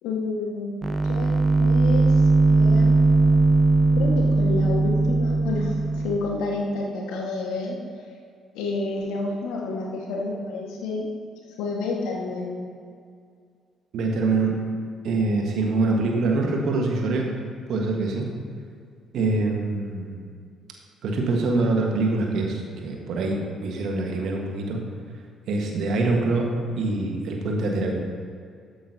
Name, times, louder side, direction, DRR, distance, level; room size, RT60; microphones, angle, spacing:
voice 1, 0.0-0.8 1.0-1.3 1.6-2.2 2.5-3.0 3.9-7.8 8.5-11.1 11.6-12.6, left 3 dB, 70° left, -1 dB, 1.6 m, -29 dB
sound 1, 0.8-6.2, right 3 dB, 25° right, 0.7 m, -19 dB
voice 2, 13.9-14.6 15.0-17.3 17.7-18.3 19.1-20.2 21.0-24.8 25.5-27.9, right 3 dB, 65° right, 1 dB, 1.5 m, -24 dB
13.5 x 8.6 x 2.8 m, 2.2 s
hypercardioid pair, 45°, 0 cm